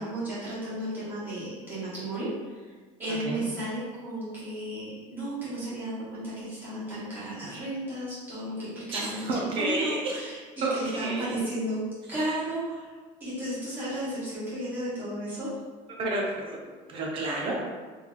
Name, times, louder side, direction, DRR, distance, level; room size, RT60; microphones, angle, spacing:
voice 1, 0.0-2.7 3.0-10.4 10.7-11.8 12.1-15.5, right 1 dB, 15° right, -12 dB, 1.5 m, -34 dB
voice 2, 8.9-10.0 10.6-11.4 16.0-16.6 16.9-17.6, right 2 dB, 35° right, -2 dB, 0.6 m, -30 dB
3.5 x 3.2 x 2.5 m, 1.4 s
cardioid pair, 170°, 16 cm